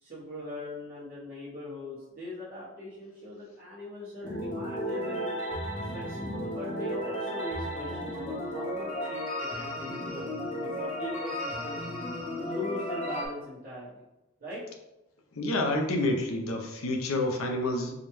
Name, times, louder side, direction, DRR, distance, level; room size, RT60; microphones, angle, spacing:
voice 1, 0.0-5.3 5.9-10.3 10.6-11.8 12.4-14.0 14.4-14.6, left 1 dB, 45° right, -10 dB, 1.0 m, -40 dB
sound 1, 4.2-13.3, equal, 35° left, 0.8 m, -34 dB
voice 2, 15.4-17.9, left 2 dB, 85° left, 3 dB, 0.6 m, -28 dB
4.8 x 2.2 x 3.0 m, 0.96 s
head